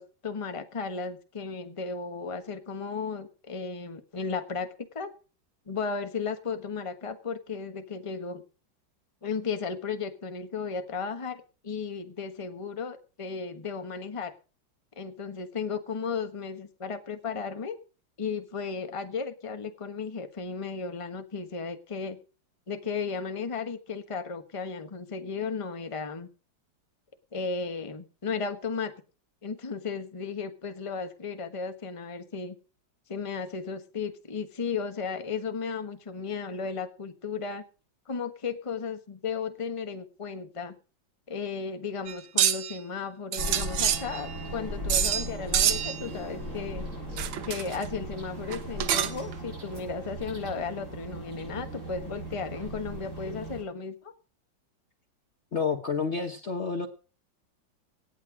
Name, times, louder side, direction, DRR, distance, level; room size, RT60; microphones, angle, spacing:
voice 1, 0.0-5.1 5.7-8.4 9.2-14.3 15.0-17.8 18.2-22.2 22.7-26.3 27.3-28.9 29.4-32.5 33.1-37.6 38.1-40.7 41.3-46.8 47.4-54.1, left 5 dB, 20° left, 7 dB, 1.2 m, -35 dB
sound 1, 42.1-42.8 43.3-44.5 44.9-45.3 45.5-46.1 47.2-47.8 48.5-49.3, right 10 dB, 85° right, 1.8 m, -26 dB
sound 2, 43.4-53.6, equal, 40° right, 6.9 m, -37 dB
voice 2, 55.5-56.9, left 5 dB, 40° left, 6 dB, 1.2 m, -29 dB
17.5 x 9.0 x 5.0 m, 0.36 s
omnidirectional pair, 2.1 m